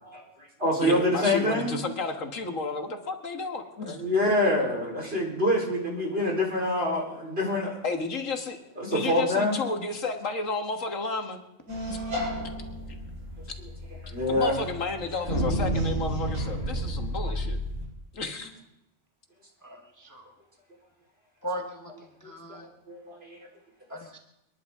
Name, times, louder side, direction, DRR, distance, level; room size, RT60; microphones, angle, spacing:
voice 1, 0.0-1.7 3.8-7.8 8.8-9.6 14.1-14.7 22.2-23.4, left 1 dB, 50° right, 4.3 m, -26 dB
voice 2, 0.8-4.0 7.8-8.6 8.9-11.4 11.9-12.0 14.3-17.6 18.1-18.5, left 3 dB, 80° left, 1.9 m, -32 dB
sound 1, 11.7-17.8, right 1 dB, 85° right, 7.3 m, -31 dB
voice 3, 19.6-20.3 21.4-21.9 22.2-22.6 23.9-24.2, right 1 dB, 15° left, 1.2 m, -38 dB
28.0 x 11.0 x 3.7 m
omnidirectional pair, 1.3 m